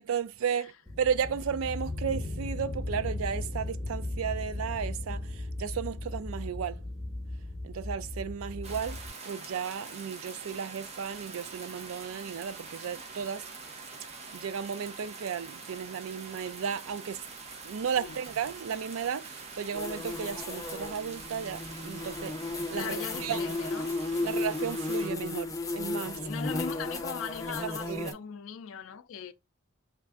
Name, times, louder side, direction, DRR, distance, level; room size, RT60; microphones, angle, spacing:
voice 1, 0.0-6.8 7.6-13.4 14.3-17.3 17.6-22.4 22.7-23.4 24.2-26.2 27.6-28.2, right 7 dB, 90° right, 0.4 m, -34 dB
sound 1, 0.9-9.1, left 2 dB, ahead, 1.3 m, -37 dB
sound 2, 8.6-25.1, right 4 dB, 30° right, 0.7 m, -45 dB
sound 3, 19.7-28.1, left 2 dB, 15° left, 0.5 m, -34 dB
voice 2, 22.8-24.4 26.1-29.3, left 7 dB, 75° left, 0.4 m, -40 dB
3.2 x 2.5 x 3.5 m
head